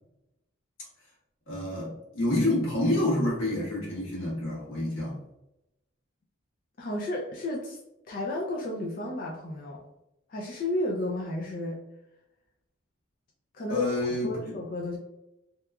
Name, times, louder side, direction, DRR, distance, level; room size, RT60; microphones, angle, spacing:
voice 1, 1.5-5.2 13.7-14.5, left 1 dB, 90° left, -6 dB, 1.3 m, -28 dB
voice 2, 6.8-7.8 8.1-9.8 10.3-11.8 13.5-13.9 14.2-15.0, left 1 dB, 45° left, -2 dB, 0.3 m, -32 dB
2.8 x 2.3 x 2.2 m, 0.91 s
head